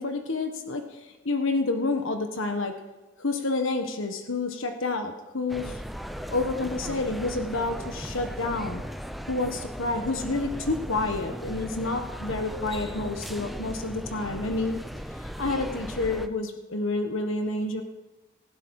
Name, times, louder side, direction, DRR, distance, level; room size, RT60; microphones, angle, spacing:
voice 1, 0.0-2.7 3.2-5.8 6.3-8.8 9.3-14.8 15.2-17.8, left 3 dB, 75° left, 5 dB, 1.4 m, -29 dB
sound 1, 5.5-16.3, equal, ahead, 0.5 m, -37 dB
19.0 x 16.0 x 4.8 m, 1.1 s
head